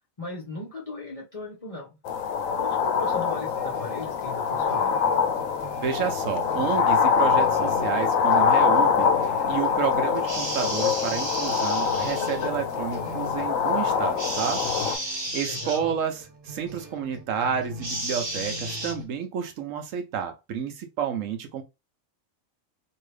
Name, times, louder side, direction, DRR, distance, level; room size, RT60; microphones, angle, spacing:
voice 1, 0.2-2.0 2.6-4.9 15.3-15.9, left 2 dB, 35° left, 0.6 m, -38 dB
sound 1, 2.0-15.0, left 6 dB, 80° left, 1.0 m, -24 dB
sound 2, 2.9-19.0, equal, 45° right, 1.0 m, -43 dB
voice 2, 5.8-14.6 15.0-15.1 15.3-21.6, right 8 dB, 70° right, 1.0 m, -30 dB
sound 3, 10.2-12.5 14.2-15.8 17.8-18.9, right 1 dB, 25° right, 0.8 m, -33 dB
2.9 x 2.7 x 3.2 m
omnidirectional pair, 1.4 m